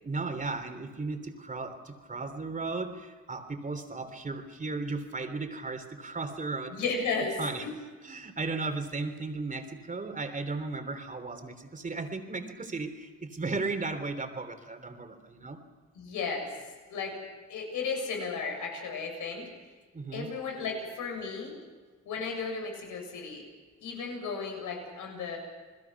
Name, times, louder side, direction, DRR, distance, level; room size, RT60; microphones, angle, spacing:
voice 1, 0.0-6.8 7.4-7.7 8.0-15.6 19.9-20.3, right 3 dB, 25° right, 6 dB, 3.4 m, -35 dB
voice 2, 6.7-7.7 15.9-16.5 16.9-17.2 17.5-19.5 20.1-21.5 22.1-23.4 23.8-25.4, left 4 dB, 80° left, 2 dB, 7.2 m, -34 dB
30.0 x 21.0 x 6.1 m, 1.4 s
cardioid pair, 90°, 30 cm